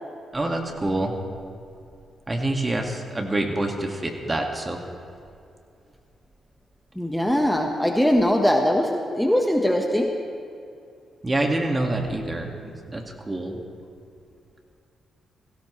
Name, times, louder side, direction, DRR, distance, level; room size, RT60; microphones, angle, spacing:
voice 1, 0.3-1.1 2.3-4.8 11.2-13.6, right 2 dB, 25° right, 3 dB, 2.0 m, -26 dB
voice 2, 6.9-10.1, equal, 5° left, 2 dB, 1.4 m, -21 dB
17.5 x 16.0 x 3.3 m, 2.5 s
hypercardioid pair, 45°, 0 cm